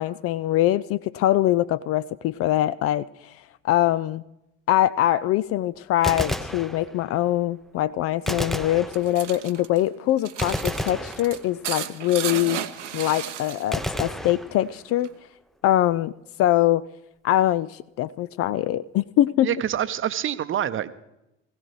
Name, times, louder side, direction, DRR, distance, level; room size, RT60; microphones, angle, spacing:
voice 1, 0.0-3.3 3.6-4.2 4.7-12.6 12.9-15.1 15.6-16.1 16.4-16.8 17.2-19.5, left 13 dB, 40° left, 17 dB, 0.4 m, -23 dB
Gunshot gunfire, 5.9-7.3 8.3-9.5 10.4-11.8 13.7-15.1, left 1 dB, ahead, 0.6 m, -31 dB
sound 1, 8.7-13.9 14.2-15.2, right 9 dB, 80° right, 0.8 m, -34 dB
voice 2, 19.4-20.9, right 10 dB, 35° right, 13 dB, 0.8 m, -26 dB
20.0 x 16.0 x 3.1 m, 0.91 s
figure-of-eight pair, 55°, 36 cm